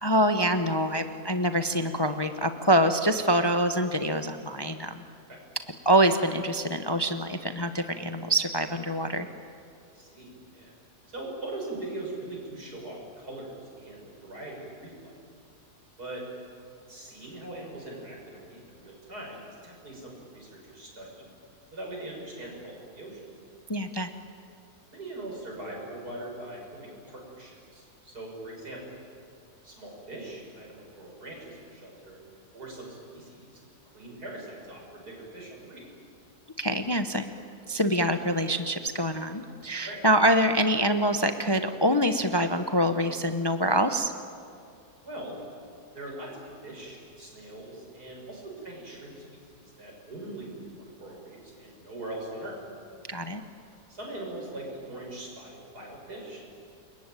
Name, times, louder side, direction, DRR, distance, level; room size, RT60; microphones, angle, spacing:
voice 1, 0.0-4.9 5.8-9.3 23.7-24.1 36.6-37.3 37.7-44.1 53.1-53.4, right 1 dB, 20° left, 8 dB, 0.7 m, -25 dB
voice 2, 9.9-10.7 11.1-15.1 16.0-16.2 16.9-21.2 21.7-23.2 24.9-28.8 29.6-32.2 32.5-33.6 33.9-35.8 39.8-40.0 45.0-45.4 46.0-46.3 46.6-52.6 53.9-56.4, right 1 dB, 85° right, -1 dB, 7.1 m, -41 dB
28.5 x 22.5 x 9.1 m, 2.4 s
omnidirectional pair, 1.6 m